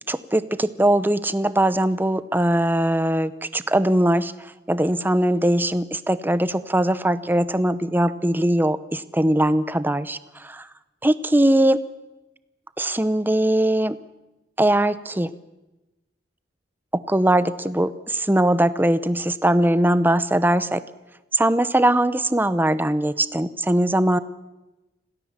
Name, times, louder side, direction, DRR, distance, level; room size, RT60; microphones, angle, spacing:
voice 1, 0.1-10.7 11.0-11.8 12.8-14.0 14.6-15.3 16.9-20.8 21.3-24.2, right 1 dB, 10° right, 14 dB, 0.8 m, -21 dB
26.5 x 17.5 x 7.4 m, 1.0 s
head